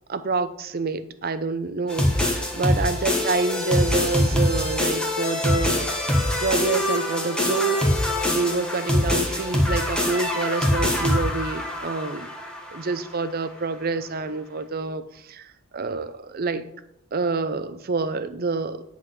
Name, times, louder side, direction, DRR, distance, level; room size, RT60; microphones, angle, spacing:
voice 1, 0.1-12.3 12.7-16.7 17.1-18.8, right 3 dB, 45° right, 13 dB, 0.6 m, -27 dB
sound 1, 1.9-13.0, left 1 dB, 5° left, 1.3 m, -24 dB
10.5 x 4.1 x 6.4 m, 0.81 s
head